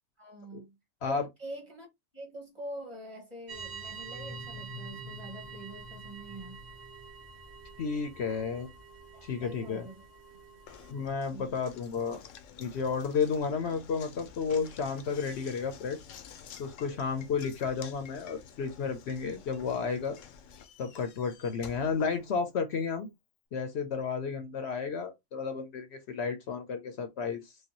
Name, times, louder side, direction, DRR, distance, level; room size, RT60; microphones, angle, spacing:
voice 1, 0.2-0.8 1.1-1.9 2.1-6.6 9.1-10.0 11.3-11.5, right 1 dB, 25° right, 1.8 m, -45 dB
sound 1, 3.5-11.1, right 5 dB, 60° right, 1.6 m, -47 dB
sound 2, 4.0-7.7, left 1 dB, 5° right, 0.6 m, -48 dB
voice 2, 7.8-8.7 9.2-9.9 10.9-12.2 12.6-16.0 16.6-20.2 20.8-23.1 23.5-27.6, left 5 dB, 65° left, 0.9 m, -32 dB
Knock, 10.7-22.8, left 7 dB, 85° left, 1.0 m, -51 dB
4.8 x 2.3 x 2.9 m
omnidirectional pair, 1.3 m